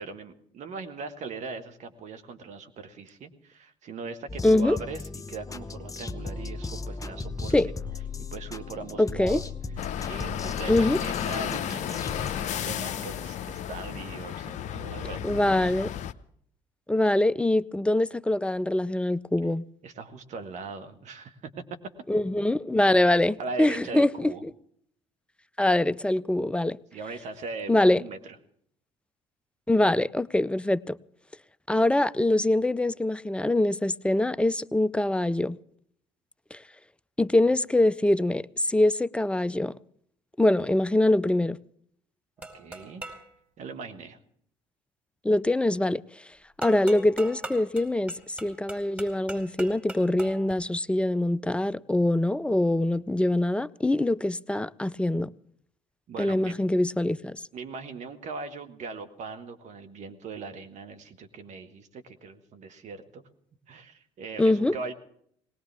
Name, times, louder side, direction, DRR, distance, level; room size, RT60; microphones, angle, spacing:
voice 1, 0.0-5.0 5.3-7.5 8.2-9.5 10.0-15.7 19.8-21.5 23.4-24.4 26.9-28.4 42.5-43.0 43.6-44.2 56.1-56.6 57.5-63.2 63.7-64.9, right 4 dB, 55° right, 1.8 m, -40 dB
sound 1, 4.3-12.4, left 4 dB, 25° left, 1.0 m, -37 dB
voice 2, 4.4-4.8 7.5-7.7 9.0-9.4 10.7-11.0 15.2-15.9 16.9-19.6 22.1-24.5 25.6-26.8 27.7-28.0 29.7-31.0 31.7-35.6 36.5-36.6 37.2-39.7 40.4-41.6 45.2-46.0 46.6-48.1 48.4-55.3 56.2-57.4 64.4-64.7, left 1 dB, 5° left, 0.6 m, -24 dB
sound 2, 9.8-16.1, left 9 dB, 55° left, 0.8 m, -33 dB
sound 3, 42.4-43.3 46.6-50.5, right 2 dB, 10° right, 4.6 m, -41 dB
20.5 x 18.5 x 3.6 m
hypercardioid pair, 55°, 15 cm